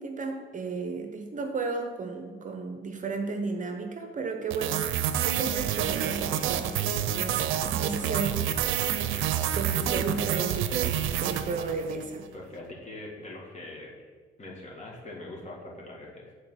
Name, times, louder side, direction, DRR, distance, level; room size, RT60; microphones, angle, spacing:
voice 1, 0.0-8.5 9.5-12.3, right 4 dB, 40° right, 4 dB, 0.8 m, -34 dB
sound 1, 4.5-12.1, right 10 dB, 85° right, 0.5 m, -28 dB
voice 2, 12.3-13.9 14.4-16.3, left 2 dB, 35° left, -3 dB, 2.2 m, -42 dB
7.6 x 4.2 x 5.7 m, 1.5 s
cardioid pair, 90°, 20 cm